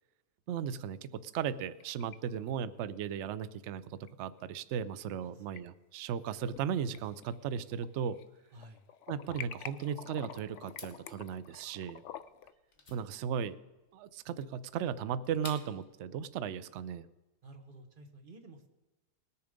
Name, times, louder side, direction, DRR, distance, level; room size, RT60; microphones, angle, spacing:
voice 1, 0.5-8.2 9.1-12.0 12.9-13.6 13.9-17.1, right 8 dB, 70° right, 14 dB, 0.6 m, -36 dB
sound 1, 1.4-2.2 2.5-2.6 4.1-4.2 5.2-5.6 6.1-6.6 6.9-8.3 8.6-12.5, left 9 dB, 70° left, 0.7 m, -48 dB
voice 2, 8.5-8.8 17.4-18.7, right 1 dB, 35° right, 5 dB, 1.1 m, -53 dB
sound 2, 10.7-15.9, left 2 dB, 30° left, 1.4 m, -53 dB
19.5 x 7.0 x 5.1 m, 1.1 s
omnidirectional pair, 1.7 m